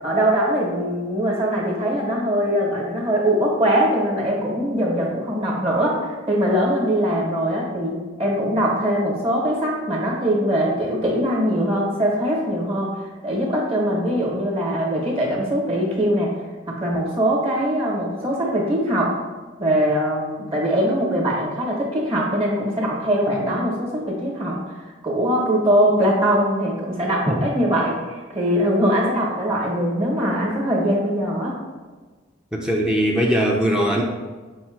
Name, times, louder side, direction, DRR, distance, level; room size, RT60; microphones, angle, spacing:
voice 1, 0.0-16.3 16.7-19.2 19.6-24.6 25.0-31.6, equal, 30° right, -4 dB, 0.9 m, -22 dB
voice 2, 32.5-34.0, equal, 5° right, -1 dB, 0.4 m, -20 dB
5.3 x 2.1 x 4.4 m, 1.4 s
head